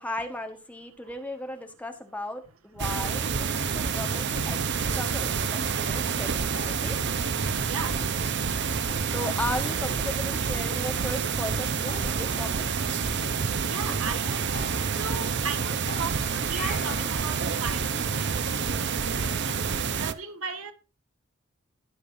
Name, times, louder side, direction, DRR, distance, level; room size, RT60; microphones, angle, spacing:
voice 1, 0.0-4.6 4.9-7.0 9.1-12.7, left 1 dB, 5° left, 1.4 m, -36 dB
sound 1, 2.8-20.1, right 5 dB, 55° right, 0.8 m, -28 dB
sound 2, 6.5-8.5 8.9-9.0 9.2-10.3 10.5-11.3 11.5-11.6 11.9-13.9 14.2-14.3 14.5-15.6 15.9-17.2, left 3 dB, 40° left, 4.5 m, -44 dB
voice 2, 7.6-7.9 13.7-14.5 15.0-19.7 20.0-20.7, right 5 dB, 85° right, 1.8 m, -37 dB
18.5 x 6.7 x 2.7 m
head